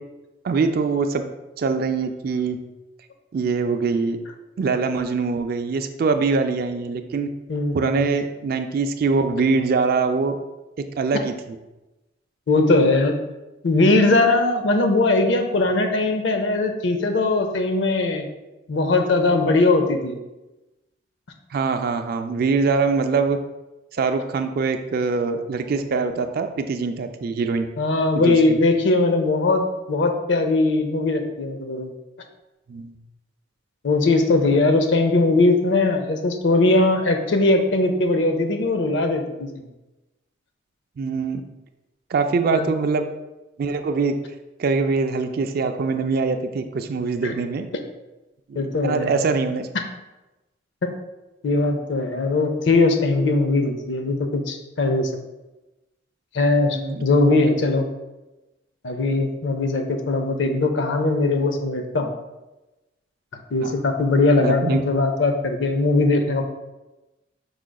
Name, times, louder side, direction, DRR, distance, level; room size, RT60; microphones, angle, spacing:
voice 1, 0.4-1.2 1.6-2.6 3.3-4.2 4.6-7.3 7.7-10.4 11.0-11.3 21.5-23.4 23.9-27.7 28.2-28.6 32.7-33.0 41.0-41.4 42.1-43.1 43.6-44.1 44.6-47.7 48.5-49.7 56.7-57.0 63.6-63.7 64.4-64.8, right 4 dB, 50° right, 7 dB, 0.3 m, -23 dB
voice 2, 7.5-8.1 12.5-13.2 13.6-18.3 18.7-20.2 27.8-31.9 33.8-39.5 42.5-42.7 47.2-47.3 48.6-49.2 50.8-50.9 51.4-55.1 56.3-57.9 58.8-62.1 63.5-66.4, left 2 dB, 70° left, 6 dB, 0.5 m, -20 dB
4.9 x 4.8 x 2.2 m, 1.0 s
head